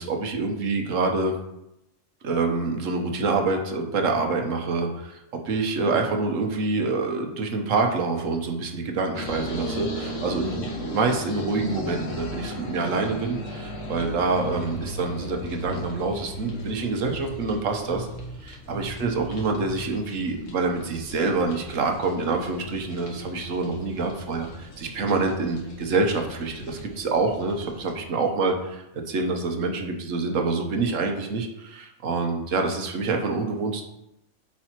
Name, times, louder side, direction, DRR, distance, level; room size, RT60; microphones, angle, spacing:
voice 1, 0.0-1.3 2.2-18.1 18.4-33.8, right 3 dB, 75° right, 4 dB, 1.3 m, -26 dB
sound 1, 9.1-27.9, left 1 dB, 70° left, 1.4 m, -38 dB
sound 2, 14.3-16.7 17.1-17.6 17.9-18.4 18.7-19.9, equal, 40° left, 0.7 m, -37 dB
8.5 x 4.8 x 3.0 m, 0.87 s
omnidirectional pair, 1.4 m